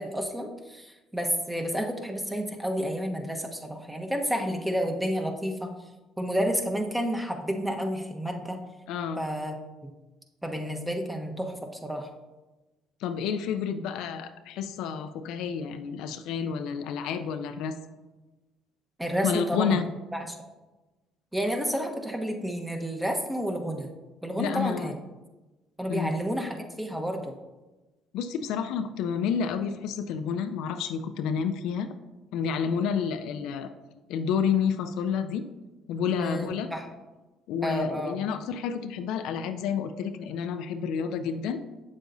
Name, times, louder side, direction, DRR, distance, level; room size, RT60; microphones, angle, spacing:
voice 1, 0.0-5.7 6.2-8.6 9.2-9.6 10.4-12.1 19.0-19.9 20.3-20.4 21.3-23.9 24.2-24.9 25.8-27.4 36.2-36.9 37.6-38.2, equal, 10° right, 3 dB, 1.1 m, -30 dB
voice 2, 8.9-9.2 13.0-17.8 19.2-19.9 24.4-24.9 25.9-26.1 28.1-31.9 32.3-33.7 34.1-35.5 35.9-36.7 37.5-41.6, left 7 dB, 75° left, 9 dB, 0.5 m, -29 dB
7.9 x 7.3 x 2.6 m, 1.1 s
supercardioid pair, 70°, 0 cm